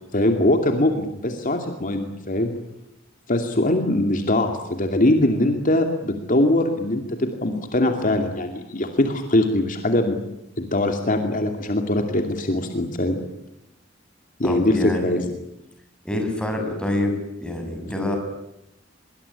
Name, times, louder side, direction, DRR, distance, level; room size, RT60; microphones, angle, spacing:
voice 1, 0.1-2.5 3.3-10.2 10.6-13.2 14.4-14.8 15.0-15.2, left 1 dB, 45° left, 5 dB, 2.6 m, -22 dB
voice 2, 14.4-15.3 16.0-17.1 17.4-18.2, left 1 dB, 5° left, 3 dB, 6.9 m, -26 dB
24.5 x 23.5 x 9.9 m, 0.88 s
head